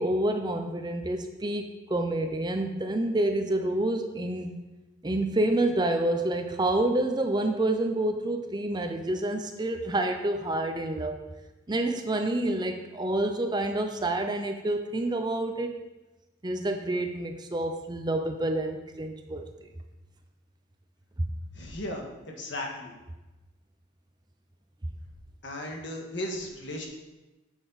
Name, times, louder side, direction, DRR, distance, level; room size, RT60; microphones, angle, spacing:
voice 1, 0.0-4.6 5.0-11.2 11.7-15.7 16.4-19.4, right 1 dB, 20° right, 6 dB, 0.6 m, -28 dB
voice 2, 21.5-22.9 25.4-26.9, left 1 dB, 60° left, 1 dB, 1.6 m, -36 dB
9.6 x 6.8 x 4.1 m, 1.1 s
head